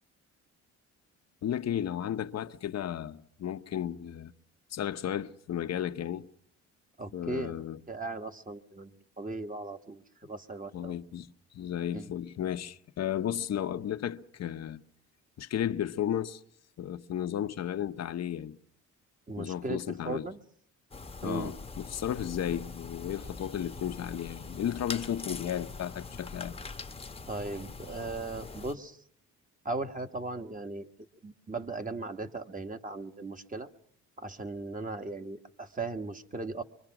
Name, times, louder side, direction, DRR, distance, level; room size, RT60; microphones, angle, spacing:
voice 1, 1.4-4.3 4.7-6.3 7.1-7.8 10.7-14.8 15.4-16.4 16.8-18.6 19.4-20.3 21.2-26.5, left 10 dB, 60° left, 1.0 m, -34 dB
voice 2, 7.0-10.9 11.9-12.1 19.3-20.4 21.2-21.5 27.3-29.0 29.7-30.9 31.2-33.7 34.2-36.6, right 3 dB, 25° right, 1.7 m, -38 dB
sound 1, 20.9-28.8, left 4 dB, 20° left, 1.1 m, -43 dB
24.5 x 24.5 x 6.0 m
cardioid pair, 90°, 30 cm